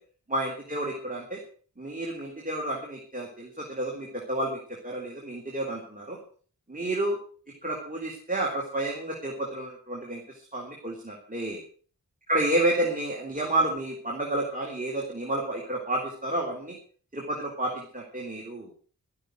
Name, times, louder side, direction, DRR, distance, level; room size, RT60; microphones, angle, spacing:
voice 1, 0.3-1.4 1.8-6.2 6.7-7.2 7.6-11.6 12.3-16.8 17.1-18.7, right 1 dB, 25° right, -2 dB, 3.7 m, -30 dB
13.0 x 12.0 x 6.3 m, 0.44 s
wide cardioid pair, 85°, 36 cm